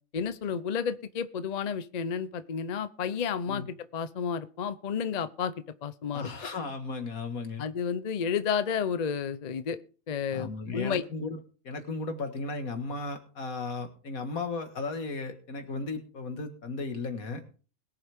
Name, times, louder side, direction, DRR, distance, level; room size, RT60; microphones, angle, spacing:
voice 1, 0.1-5.5 5.8-6.3 7.6-9.8 10.1-11.0, left 7 dB, 40° left, 13 dB, 0.6 m, -31 dB
voice 2, 6.1-7.6 10.3-11.4 11.6-17.4, left 3 dB, 85° left, 6 dB, 2.2 m, -35 dB
21.0 x 7.7 x 3.6 m, 0.38 s
omnidirectional pair, 1.4 m